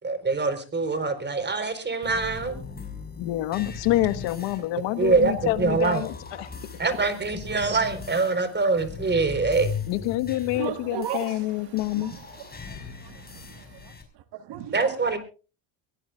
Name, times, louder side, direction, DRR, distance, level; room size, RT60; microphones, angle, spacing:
voice 1, 0.0-2.6 5.0-6.0 6.8-9.7 14.7-15.2, right 4 dB, 25° right, 4.2 m, -24 dB
sound 1, 2.0-14.0, left 5 dB, 20° left, 5.5 m, -39 dB
voice 2, 3.2-6.5 9.8-12.1, left 16 dB, 70° left, 1.5 m, -27 dB
voice 3, 10.5-11.6 12.0-12.2 12.6-13.9 14.3-14.9, right 12 dB, 65° right, 1.6 m, -36 dB
23.5 x 17.0 x 2.4 m
supercardioid pair, 100°, 45 cm